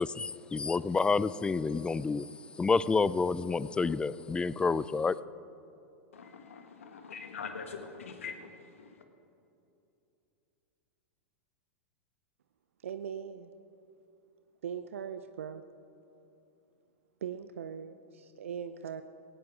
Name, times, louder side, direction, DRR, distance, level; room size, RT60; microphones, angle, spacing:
voice 1, 0.0-2.3 2.6-5.2, left 4 dB, 15° left, 18 dB, 0.4 m, -29 dB
voice 2, 6.1-8.9, left 5 dB, 80° left, 5 dB, 1.7 m, -43 dB
voice 3, 12.8-13.5 14.6-15.6 17.2-19.0, right 8 dB, 75° right, 10 dB, 0.6 m, -40 dB
19.0 x 17.0 x 3.7 m, 2.8 s
hypercardioid pair, 100°, 7 cm